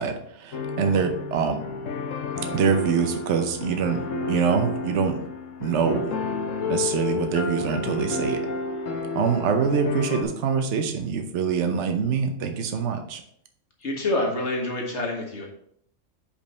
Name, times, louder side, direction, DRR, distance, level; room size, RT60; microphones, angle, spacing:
voice 1, 0.0-1.6 2.5-4.0 4.3-5.2 5.6-6.1 6.7-8.4 9.1-13.2, right 6 dB, 70° right, 6 dB, 1.1 m, -24 dB
sound 1, 0.5-10.2, left 3 dB, 85° left, 1.2 m, -30 dB
voice 2, 13.8-15.5, left 2 dB, 65° left, 0 dB, 1.9 m, -27 dB
5.2 x 5.2 x 5.3 m, 0.68 s
omnidirectional pair, 1.3 m